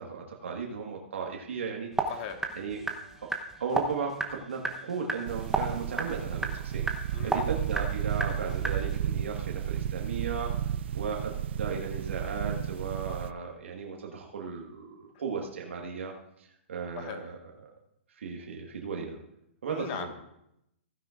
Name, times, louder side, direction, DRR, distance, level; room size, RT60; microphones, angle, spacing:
voice 1, 0.0-2.1 2.5-2.8 3.2-3.3 3.6-6.9 7.2-10.5 10.9-16.1 16.4-17.3 18.2-19.2 19.6-20.1, right 5 dB, 80° right, 0 dB, 1.6 m, -36 dB
sound 1, 1.9-9.0, right 2 dB, 5° right, 0.9 m, -34 dB
voice 2, 2.1-2.4 7.1-7.4 17.0-17.3 19.7-20.1, left 8 dB, 45° left, 5 dB, 1.6 m, -38 dB
sound 2, 5.3-13.3, right 10 dB, 65° right, 0.4 m, -33 dB
15.5 x 9.6 x 2.5 m, 0.79 s
hypercardioid pair, 140°, 7 cm